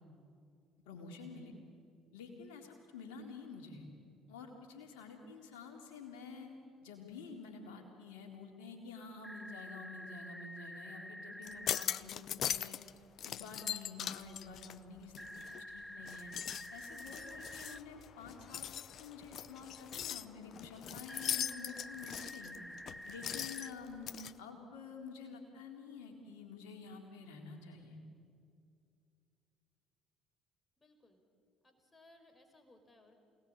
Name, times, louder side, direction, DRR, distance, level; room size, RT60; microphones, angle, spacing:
voice 1, 0.9-1.5 2.1-3.9 4.3-6.5 6.8-12.8 13.2-15.4 15.7-16.3 16.7-18.7 19.0-22.6 23.0-28.0, left 4 dB, 70° left, 2 dB, 3.9 m, -49 dB
sound 1, 9.2-11.9 15.2-17.8 21.1-23.7, equal, ahead, 1.0 m, -48 dB
sound 2, 11.4-12.9 13.2-15.6 16.0-24.3, left 10 dB, 50° left, 0.7 m, -40 dB
voice 2, 30.8-31.2 31.6-33.2, left 2 dB, 25° left, 6 dB, 4.9 m, -63 dB
27.5 x 19.0 x 9.0 m, 2.5 s
figure-of-eight pair, 55°, 0 cm